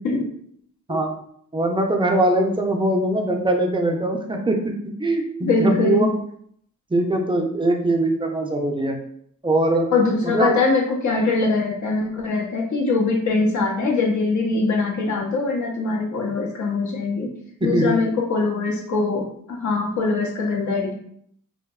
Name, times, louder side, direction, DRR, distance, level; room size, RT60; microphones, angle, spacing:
voice 1, 1.5-4.7 5.0-6.1 6.9-9.0 9.4-9.9 10.2-10.5 17.6-17.9, right 1 dB, 15° right, 2 dB, 0.4 m, -21 dB
voice 2, 5.4-6.1 9.9-17.3 17.6-20.9, left 3 dB, 60° left, 1 dB, 0.7 m, -22 dB
2.6 x 2.1 x 2.3 m, 0.65 s
cardioid pair, 60°, 32 cm